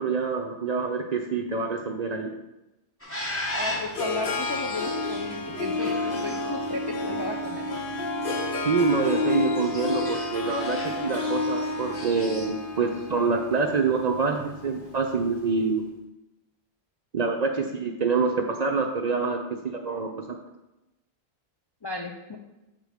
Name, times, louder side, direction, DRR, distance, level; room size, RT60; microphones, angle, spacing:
voice 1, 0.0-2.3 8.6-15.9 17.1-20.4, right 4 dB, 50° right, 4 dB, 0.5 m, -26 dB
sound 1, 3.0-12.5, left 1 dB, 15° left, 1.0 m, -38 dB
Harp, 3.3-15.4, left 2 dB, 55° left, 1.0 m, -30 dB
voice 2, 3.5-7.8 21.8-22.4, left 3 dB, 40° left, 1 dB, 0.3 m, -34 dB
6.6 x 3.7 x 4.9 m, 0.98 s
omnidirectional pair, 1.1 m